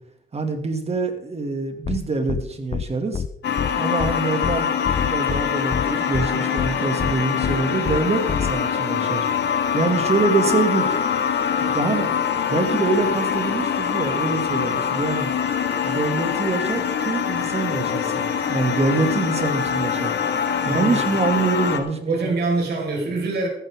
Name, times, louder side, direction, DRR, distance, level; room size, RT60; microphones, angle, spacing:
voice 1, 0.3-3.2 3.8-9.3 9.7-11.0 11.6-12.2 12.5-15.3 15.8-20.1 20.7-22.3 22.6-22.7, right 3 dB, 30° right, 5 dB, 2.4 m, -25 dB
sound 1, 1.9-2.0 2.3-2.4 2.7-2.8 3.1-3.3 3.6-3.7 4.0-4.1 4.4-4.6 4.9-5.4 5.7-5.8 6.1-6.3 6.6-6.7 7.0-7.1 7.4-7.6 7.9-8.0 8.3-8.5, left 7 dB, 35° left, 0.6 m, -26 dB
sound 2, 3.4-21.8, left 7 dB, 60° left, 1.8 m, -24 dB
voice 2, 20.6-21.0 22.1-23.5, right 3 dB, 55° right, -1 dB, 5.3 m, -24 dB
14.0 x 13.0 x 3.7 m, 0.78 s
cardioid pair, 90°, 20 cm